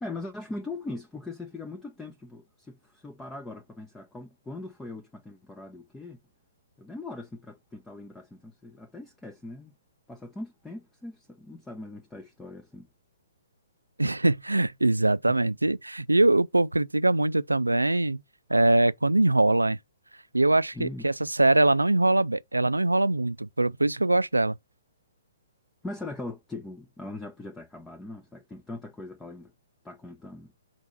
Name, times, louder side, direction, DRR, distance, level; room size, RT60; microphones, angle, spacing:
voice 1, 0.0-6.2 6.8-9.7 10.1-12.9 20.7-21.0 25.8-29.5 29.8-30.5, left 2 dB, 5° left, 0.7 m, -40 dB
voice 2, 14.0-18.2 18.5-19.8 20.3-24.5, right 2 dB, 85° right, 0.4 m, -23 dB
4.7 x 4.4 x 5.9 m
figure-of-eight pair, 125°, 0 cm